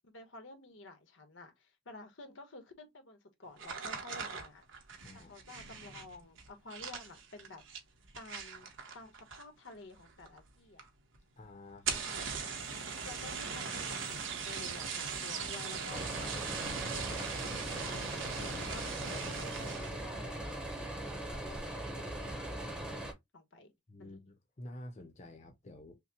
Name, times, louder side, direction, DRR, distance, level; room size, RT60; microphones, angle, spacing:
voice 1, 0.0-4.6 5.3-7.6 8.1-8.7 8.9-10.9 13.0-18.1 18.4-23.7 24.0-24.1, left 2 dB, 90° left, 1.1 m, -51 dB
sound 1, 3.6-9.7 10.0-10.5 10.8-10.9 11.1-11.2 11.7-20.0 20.5-20.9 21.3-21.6, right 5 dB, 90° right, 1.0 m, -40 dB
voice 2, 5.0-5.3 11.3-12.3 15.2-15.8 23.9-26.0, left 1 dB, 40° left, 0.6 m, -50 dB
sound 2, 12.5-19.7, right 9 dB, 70° right, 0.6 m, -50 dB
sound 3, 15.9-23.1, right 1 dB, 5° right, 0.7 m, -40 dB
5.6 x 2.0 x 2.8 m
head